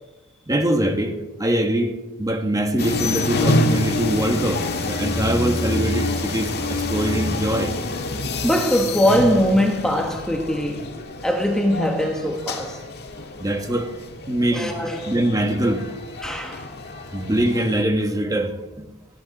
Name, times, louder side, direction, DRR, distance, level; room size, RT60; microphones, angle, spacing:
voice 1, 0.5-1.9 2.2-7.7 13.4-13.9 14.3-15.8 17.1-18.9, right 1 dB, 15° right, 1.6 m, -23 dB
sound 1, 2.8-17.8, left 2 dB, 50° left, 1.7 m, -27 dB
voice 2, 8.4-12.8 14.5-15.1 16.2-16.7, equal, 5° left, 1.4 m, -21 dB
19.0 x 14.5 x 4.2 m
head